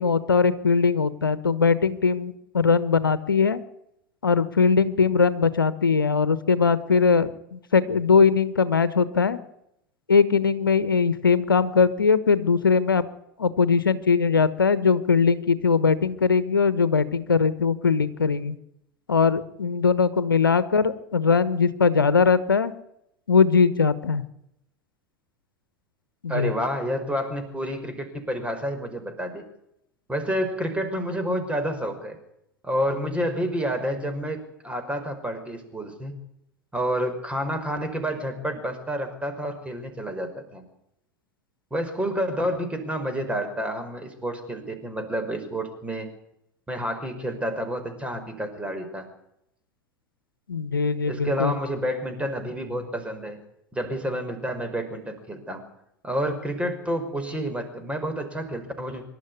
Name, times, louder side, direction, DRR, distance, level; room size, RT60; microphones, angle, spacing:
voice 1, 0.0-3.6 4.2-9.4 10.1-13.0 13.4-18.6 19.1-22.7 23.3-24.2 26.2-26.5 50.5-51.5, left 5 dB, 85° left, 15 dB, 1.2 m, -21 dB
voice 2, 26.3-29.4 30.1-32.2 32.6-36.1 36.7-40.6 41.7-46.1 46.7-49.1 51.1-53.4 53.7-55.6 56.0-59.0, equal, 10° right, 7 dB, 5.7 m, -29 dB
25.5 x 12.0 x 9.8 m, 0.80 s
figure-of-eight pair, 85°, 11 cm